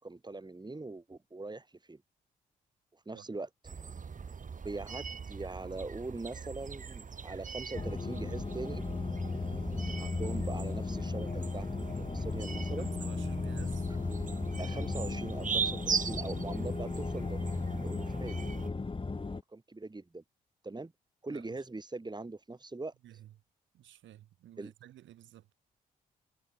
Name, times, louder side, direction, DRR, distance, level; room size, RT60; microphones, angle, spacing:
voice 1, 0.0-2.0 2.9-3.5 4.6-8.9 10.0-12.9 14.6-17.4 17.8-18.3 19.5-20.2 20.6-20.9 21.2-22.9 24.6-24.7, right 2 dB, 20° right, 3.2 m, -41 dB
sound 1, 3.6-18.7, right 6 dB, 40° right, 1.7 m, -40 dB
sound 2, 7.7-19.4, left 3 dB, 25° left, 1.6 m, -36 dB
voice 2, 12.8-13.9 21.3-21.6 23.0-23.4 23.7-25.5, right 13 dB, 70° right, 4.6 m, -53 dB
hypercardioid pair, 40°, 20 cm